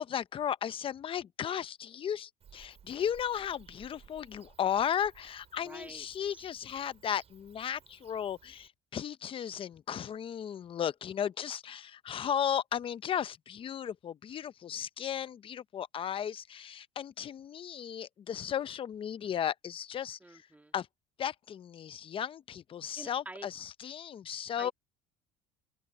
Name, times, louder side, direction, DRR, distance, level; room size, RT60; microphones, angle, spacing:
voice 1, 0.0-20.2 20.7-20.9 21.2-24.7, left 9 dB, 30° left, 0.7 m, -35 dB
Bird / Cricket, 2.4-8.7, right 8 dB, 40° right, 6.1 m, -59 dB
voice 2, 5.6-6.5 20.2-20.7 23.0-23.5 24.6-24.7, right 2 dB, 10° right, 2.7 m, -48 dB
open air
cardioid pair, 115°, 17 cm